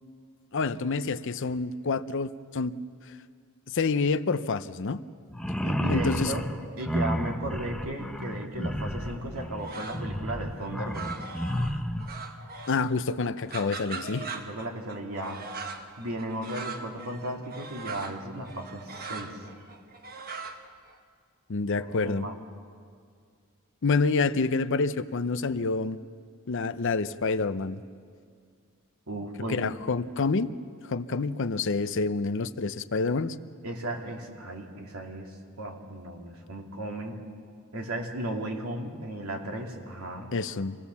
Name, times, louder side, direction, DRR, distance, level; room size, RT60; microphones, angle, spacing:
voice 1, 0.5-2.8 3.7-5.0 5.9-6.3 12.7-14.3 21.5-22.3 23.8-26.0 26.5-27.8 29.5-30.5 30.8-33.4 40.3-40.8, left 4 dB, 60° left, 13 dB, 0.6 m, -27 dB
sound 1, 5.3-12.1, equal, 5° left, 0.8 m, -31 dB
voice 2, 5.6-6.4 6.8-11.1 14.2-15.4 16.0-19.4 21.8-22.4 29.1-29.7 33.6-35.3 35.6-37.2 37.7-40.3, right 1 dB, 85° right, 1 dB, 2.7 m, -35 dB
sound 2, 9.1-10.2 10.5-12.9 13.2-20.9, right 4 dB, 45° right, 1.2 m, -40 dB
26.5 x 18.0 x 7.1 m, 2.2 s
head